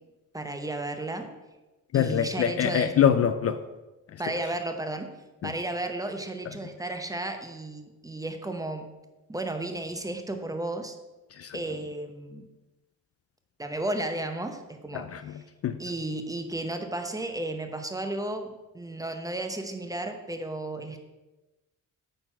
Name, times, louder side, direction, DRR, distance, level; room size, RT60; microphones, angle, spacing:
voice 1, 0.3-1.3 1.9-2.9 4.2-5.1 5.4-8.9 9.3-11.0 11.5-12.5 13.6-15.1 15.8-21.0, right 2 dB, 10° right, 6 dB, 0.8 m, -33 dB
voice 2, 1.9-3.6 4.1-4.2 5.4-5.5 11.3-11.6 14.9-15.8, left 8 dB, 45° left, 10 dB, 0.4 m, -25 dB
8.9 x 4.1 x 5.6 m, 1.1 s
cardioid pair, 105°, 33 cm